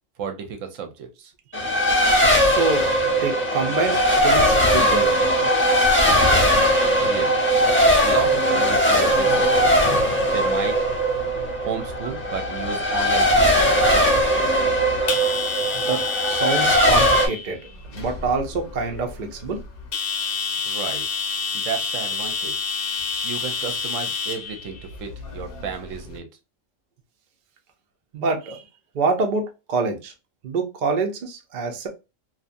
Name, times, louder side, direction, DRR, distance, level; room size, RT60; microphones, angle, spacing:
voice 1, 0.2-1.3 7.0-7.4 8.0-9.9 10.2-10.8 11.6-14.6 20.6-21.0 21.5-22.6 23.2-26.3, right 6 dB, 75° right, 1.0 m, -32 dB
Race car auto racing, 1.5-17.3, equal, 15° left, 0.5 m, -19 dB
voice 2, 2.4-2.9 3.2-5.2 15.7-16.0 16.3-17.6 17.9-19.6 28.1-28.6 28.9-30.1 30.4-31.9, right 4 dB, 50° right, 0.6 m, -26 dB
sound 1, 10.3-26.2, left 5 dB, 55° left, 0.8 m, -30 dB
2.7 x 2.3 x 2.5 m
omnidirectional pair, 1.3 m